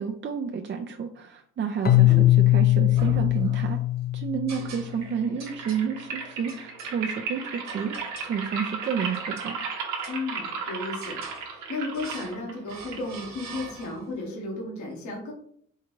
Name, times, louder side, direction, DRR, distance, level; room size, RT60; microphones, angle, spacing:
voice 1, 0.0-3.8 4.1-8.0 8.2-9.6, right 7 dB, 40° right, 3 dB, 0.4 m, -30 dB
Keyboard (musical), 1.8-4.8, left 15 dB, 30° left, 0.5 m, -20 dB
sound 1, 2.0-2.5 2.9-3.8 4.5-5.1 5.4-5.9 6.5-6.9 7.7-8.4 8.8-9.5 10.0-10.6 11.0-11.5 11.9-12.4 12.7-14.2, right 2 dB, 60° right, 1.1 m, -43 dB
sound 2, 4.9-13.9, right 5 dB, 90° right, 0.9 m, -36 dB
voice 2, 10.1-15.3, left 2 dB, 70° left, -1 dB, 1.2 m, -34 dB
3.6 x 3.3 x 3.1 m, 0.62 s
cardioid pair, 90°, 30 cm